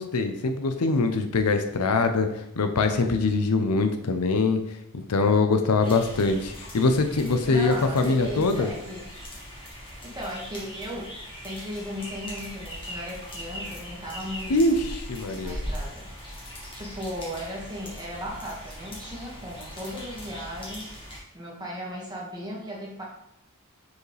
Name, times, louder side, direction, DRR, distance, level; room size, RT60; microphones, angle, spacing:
voice 1, 0.0-2.3 2.6-4.6 5.1-8.7 14.5-15.6, left 3 dB, 85° left, 7 dB, 0.6 m, -23 dB
sound 1, 5.8-21.2, equal, 25° left, 1.5 m, -40 dB
voice 2, 7.5-9.1 10.0-11.1 11.4-14.8 15.4-16.1 16.7-20.9 21.3-23.0, equal, 20° right, -4 dB, 1.7 m, -36 dB
6.5 x 4.9 x 3.3 m, 0.80 s
head